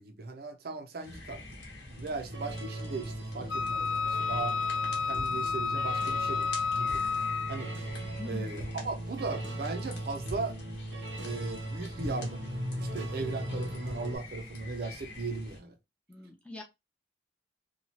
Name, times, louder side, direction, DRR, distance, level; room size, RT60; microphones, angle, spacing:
voice 1, 0.0-1.4 1.9-4.6 5.0-7.0 7.5-7.8 8.2-10.6 11.2-12.5 12.8-15.8, right 3 dB, 55° right, 0.5 m, -37 dB
sound 1, 1.0-15.6, left 2 dB, 65° left, 1.0 m, -47 dB
sound 2, 2.3-14.2, right 1 dB, 85° right, 0.9 m, -38 dB
Wind instrument woodwind instrument, 3.5-7.7, left 5 dB, 85° left, 0.4 m, -31 dB
voice 2, 8.2-8.6 16.1-16.6, left 2 dB, 5° left, 0.6 m, -43 dB
3.0 x 2.3 x 2.7 m
head